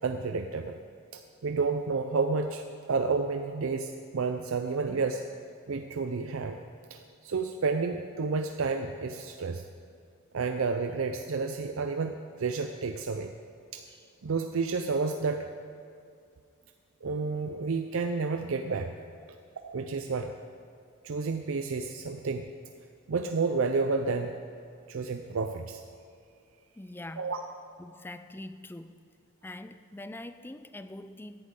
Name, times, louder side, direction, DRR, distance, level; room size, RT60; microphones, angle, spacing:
voice 1, 0.0-0.8 1.1-5.2 5.7-6.6 6.9-9.6 10.3-13.3 13.7-13.8 14.2-15.5 17.0-18.9 19.6-20.3 21.0-22.4 23.1-24.4 24.9-25.8 27.2-27.4, right 4 dB, 70° right, 5 dB, 0.5 m, -30 dB
voice 2, 26.8-27.3 27.8-29.0 29.4-31.4, left 1 dB, 10° left, 11 dB, 0.4 m, -43 dB
17.5 x 10.5 x 3.8 m, 2.3 s
head